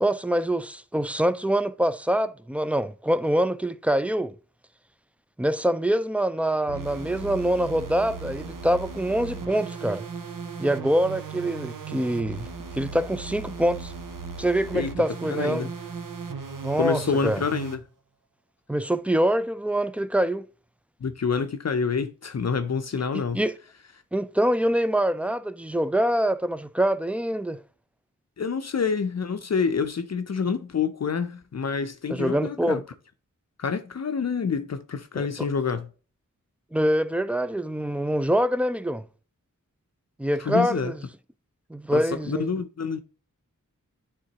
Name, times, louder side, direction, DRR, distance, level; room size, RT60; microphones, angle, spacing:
voice 1, 0.0-4.3 5.4-10.0 10.6-12.5 12.8-13.9 14.4-15.7 16.6-17.4 18.7-20.4 23.1-23.5 24.1-27.6 32.1-32.8 35.2-35.3 36.7-39.0 40.2-41.0 41.7-42.5, right 1 dB, 5° right, 0.3 m, -25 dB
sound 1, 6.7-17.8, right 5 dB, 90° right, 0.7 m, -37 dB
voice 2, 14.7-15.7 16.8-17.8 21.0-23.4 28.4-32.8 33.6-35.9 40.4-40.9 41.9-43.0, left 5 dB, 55° left, 0.5 m, -27 dB
9.3 x 3.7 x 2.9 m
wide cardioid pair, 75°, 31 cm